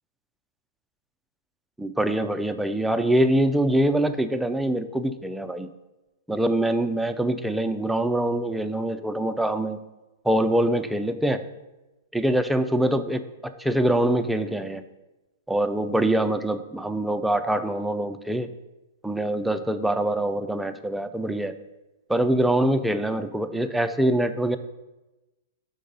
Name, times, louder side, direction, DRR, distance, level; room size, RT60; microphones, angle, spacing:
voice 1, 1.8-5.7 6.3-9.8 10.2-11.4 12.1-14.8 15.5-18.5 19.0-21.5 22.1-24.6, right 1 dB, 5° right, 8 dB, 0.3 m, -24 dB
5.1 x 4.7 x 5.3 m, 1.1 s
hypercardioid pair, 135°, 0 cm